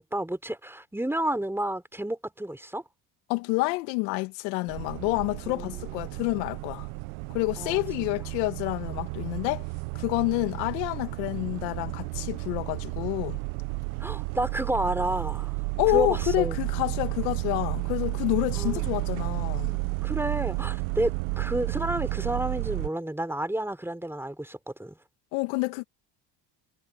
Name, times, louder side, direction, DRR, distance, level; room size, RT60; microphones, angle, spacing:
voice 1, 0.0-2.8 5.5-5.8 7.6-7.8 14.0-15.6 15.9-16.6 18.5-18.8 19.6-25.0, right 1 dB, 5° right, 4.0 m, -31 dB
voice 2, 3.3-6.9 7.3-9.6 9.9-13.4 15.8-19.7 25.3-25.8, left 25 dB, 90° left, 1.4 m, -28 dB
sound 1, 4.7-22.9, right 28 dB, 80° right, 0.6 m, -32 dB
supercardioid pair, 80°, 48 cm